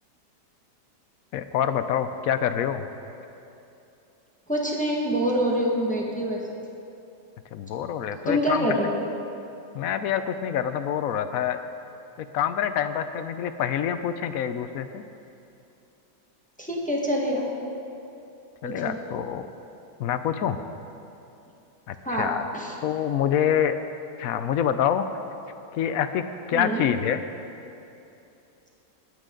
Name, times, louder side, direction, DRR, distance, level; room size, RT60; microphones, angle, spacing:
voice 1, 1.3-2.8 7.5-8.7 9.7-11.6 12.2-15.0 18.6-19.5 20.0-20.6 21.9-22.4 22.8-23.8 24.2-25.1 25.7-26.2 26.5-27.2, left 9 dB, 70° left, 10 dB, 0.8 m, -26 dB
voice 2, 4.5-6.7 8.3-8.9 16.6-17.5 18.6-19.0 22.0-22.7 26.5-26.8, equal, 5° left, -3 dB, 1.3 m, -26 dB
20.5 x 9.0 x 3.8 m, 2.8 s
omnidirectional pair, 1.9 m